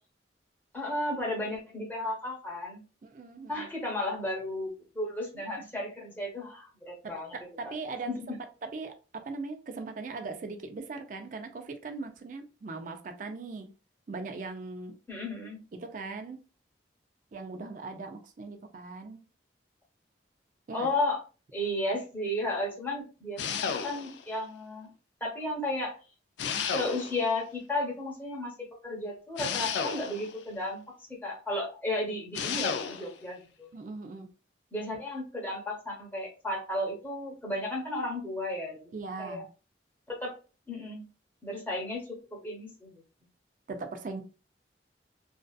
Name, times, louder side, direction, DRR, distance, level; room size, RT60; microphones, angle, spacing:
voice 1, 0.7-2.8 3.5-7.3 8.1-8.2 15.1-15.6 20.7-21.2 21.5-24.9 25.2-26.0 26.7-30.8 31.2-33.7 34.7-38.8 39.2-39.4 40.1-40.3 40.7-41.1 41.4-43.0, left 1 dB, 10° left, -2 dB, 0.8 m, -34 dB
voice 2, 3.0-3.7 5.3-5.4 7.0-13.7 14.1-15.0 15.7-16.4 17.3-19.2 20.7-20.9 33.7-34.3 38.9-39.5 43.7-44.2, right 3 dB, 45° right, 6 dB, 0.4 m, -40 dB
sound 1, 23.4-24.3 26.4-27.3 29.4-30.4 32.3-33.1, left 6 dB, 75° left, 0.3 m, -32 dB
2.6 x 2.3 x 2.3 m, 0.34 s
head